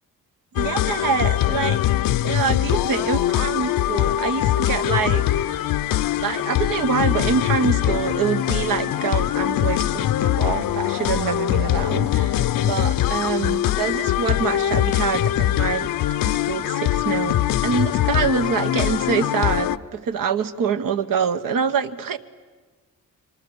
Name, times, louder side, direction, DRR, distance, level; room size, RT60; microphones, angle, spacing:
sound 1, 0.5-19.8, left 13 dB, 70° left, 0.7 m, -22 dB
voice 1, 0.5-1.8 2.2-5.6 6.2-15.9 16.2-22.2, right 6 dB, 70° right, 9 dB, 1.4 m, -25 dB
26.5 x 24.5 x 8.2 m, 1.4 s
cardioid pair, 80°, 34 cm